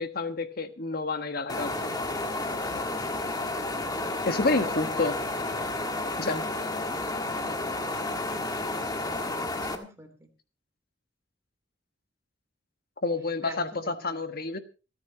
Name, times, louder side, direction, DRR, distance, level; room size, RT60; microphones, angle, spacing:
voice 1, 0.0-1.9 4.3-5.2 6.2-6.4 13.0-14.6, left 3 dB, 55° left, 9 dB, 1.4 m, -29 dB
sound 1, 1.5-9.8, left 2 dB, 20° left, 1.6 m, -31 dB
voice 2, 4.4-5.4 7.6-8.2 9.5-10.3 13.4-14.3, equal, 15° right, 4 dB, 3.0 m, -46 dB
27.5 x 9.7 x 2.9 m, 0.33 s
head